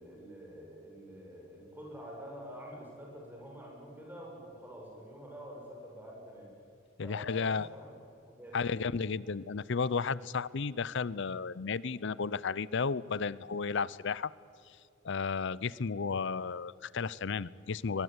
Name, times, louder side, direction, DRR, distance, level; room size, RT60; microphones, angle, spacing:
voice 1, 0.0-6.5 7.0-8.0 8.2-8.8, equal, 10° right, -2 dB, 7.6 m, -47 dB
voice 2, 7.0-7.7 8.5-14.3 14.7-14.8 15.0-18.0, left 5 dB, 60° left, 20 dB, 0.6 m, -33 dB
23.0 x 21.0 x 9.6 m, 2.5 s
head